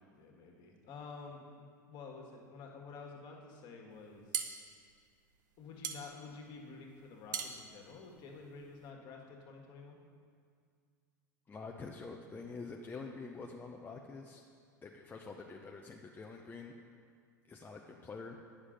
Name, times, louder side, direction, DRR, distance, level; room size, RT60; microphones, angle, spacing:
voice 1, 0.1-4.6 5.6-10.0, left 4 dB, 45° left, 0 dB, 1.7 m, -50 dB
sound 1, 4.0-8.9, right 8 dB, 70° right, 0.8 m, -42 dB
voice 2, 11.5-14.4 14.8-16.7 17.5-18.4, left 4 dB, 20° left, 1 dB, 0.7 m, -46 dB
9.8 x 6.6 x 5.1 m, 2.1 s
hypercardioid pair, 85°, 10 cm